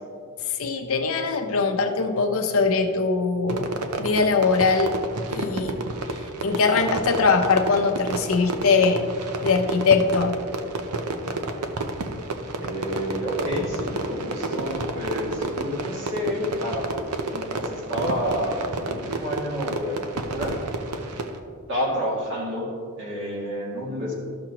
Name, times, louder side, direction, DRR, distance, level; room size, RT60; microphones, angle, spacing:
voice 1, 0.4-5.0 5.3-5.8 6.1-9.1 9.4-10.4, left 4 dB, 65° left, 5 dB, 0.7 m, -22 dB
Fireworks, 3.5-21.4, right 2 dB, 85° right, 0.7 m, -31 dB
voice 2, 12.6-16.9 17.3-20.0 20.3-20.5 21.7-22.7 23.0-24.1, equal, 55° right, -4 dB, 2.3 m, -29 dB
13.5 x 6.1 x 3.0 m, 2.3 s
head